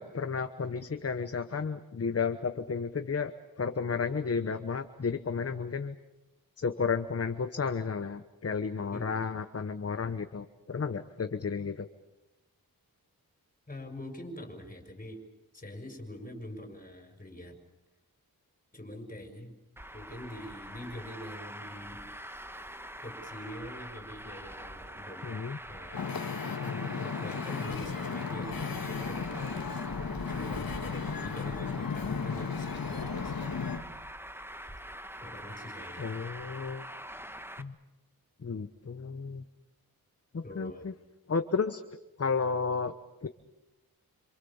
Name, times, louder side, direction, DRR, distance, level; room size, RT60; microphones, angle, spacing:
voice 1, 0.0-3.3 3.6-6.0 6.6-11.9 25.2-25.6 36.0-36.9 37.6-37.7 38.4-39.4 40.3-40.9 41.3-41.8 42.2-42.9 43.2-43.3, left 5 dB, 40° left, 9 dB, 1.1 m, -32 dB
voice 2, 13.7-15.2 15.5-17.6 18.7-19.5 19.9-22.0 23.0-25.3 25.7-26.1 26.5-29.6 30.1-33.5 35.2-36.1 40.4-40.9, left 1 dB, 20° left, 4 dB, 5.9 m, -44 dB
Traffic noise roadway noise, 19.8-37.6, right 1 dB, 5° right, 1.4 m, -44 dB
Wind / Ocean, 25.9-33.8, left 5 dB, 65° left, 2.1 m, -35 dB
27.0 x 27.0 x 7.2 m, 0.98 s
wide cardioid pair, 85°, 37 cm